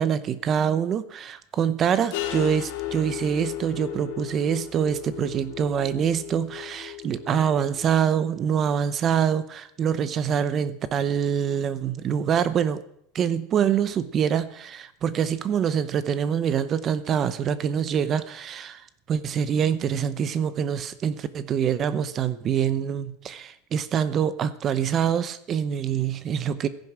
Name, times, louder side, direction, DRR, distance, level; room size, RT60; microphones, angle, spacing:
voice 1, 0.0-12.8 13.1-26.7, right 8 dB, 25° right, 15 dB, 0.7 m, -25 dB
sound 1, 2.1-7.9, left 12 dB, 55° left, 2.3 m, -35 dB
14.5 x 10.5 x 7.4 m, 0.70 s
supercardioid pair, 180°, 0 cm